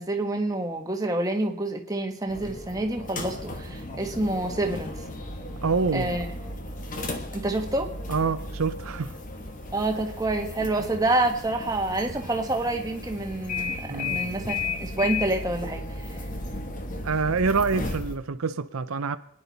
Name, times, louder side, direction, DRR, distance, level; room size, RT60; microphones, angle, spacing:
voice 1, 0.0-4.9 5.9-6.2 7.3-7.9 9.7-15.8, right 2 dB, 15° right, 1.4 m, -27 dB
metro - porta, 2.3-18.2, left 3 dB, 40° left, 1.5 m, -35 dB
voice 2, 5.6-6.2 8.1-9.1 13.9-14.2 17.0-19.2, right 4 dB, 85° right, 0.7 m, -26 dB
27.5 x 10.0 x 4.1 m
head